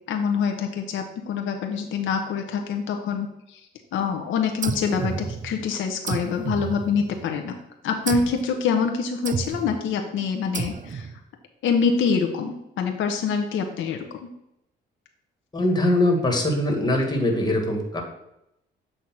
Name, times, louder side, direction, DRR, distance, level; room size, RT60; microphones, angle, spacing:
voice 1, 0.1-3.6 3.9-7.5 7.8-11.1 11.6-14.3, left 6 dB, 80° left, 4 dB, 0.7 m, -25 dB
sound 1, 4.6-5.7 6.1-7.4 8.1-8.5 9.2-9.8 10.5-11.2, right 6 dB, 40° right, 0.5 m, -31 dB
voice 2, 15.5-18.0, left 1 dB, 20° left, 2 dB, 1.6 m, -22 dB
7.8 x 2.7 x 5.9 m, 0.83 s
cardioid pair, 90°, 20 cm